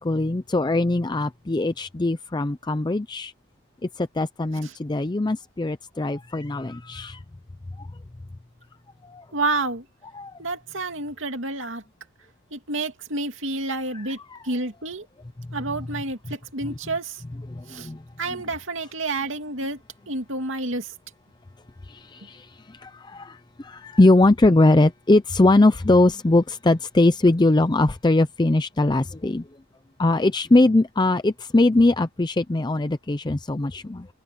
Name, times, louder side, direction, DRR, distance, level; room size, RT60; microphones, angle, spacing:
voice 1, 0.0-3.3 4.0-7.2 7.8-7.9 9.0-9.2 10.1-10.3 13.9-14.4 16.7-16.8 17.5-18.0 21.9-29.4 30.0-34.1, left 2 dB, 20° left, 0.5 m, -21 dB
voice 2, 9.3-9.8 10.4-11.8 12.5-14.2 14.4-15.1 15.5-17.2 17.7-17.9 18.2-19.8 20.1-20.9, right 2 dB, 65° right, 2.8 m, -29 dB
open air
head